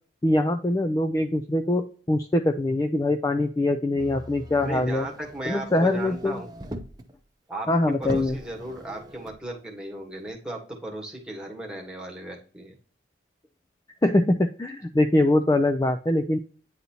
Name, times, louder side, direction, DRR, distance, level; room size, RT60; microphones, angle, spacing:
voice 1, 0.2-5.1 5.5-6.4 7.7-8.4 14.0-16.4, left 1 dB, 20° left, 6 dB, 0.3 m, -23 dB
Motor vehicle (road), 4.0-7.1 7.6-7.7 8.0-9.4 10.3-10.4, equal, 20° right, 0.6 m, -41 dB
voice 2, 4.6-6.5 7.5-7.7 8.0-12.7, right 1 dB, 5° right, 0 dB, 1.4 m, -36 dB
9.3 x 4.0 x 2.9 m, 0.42 s
head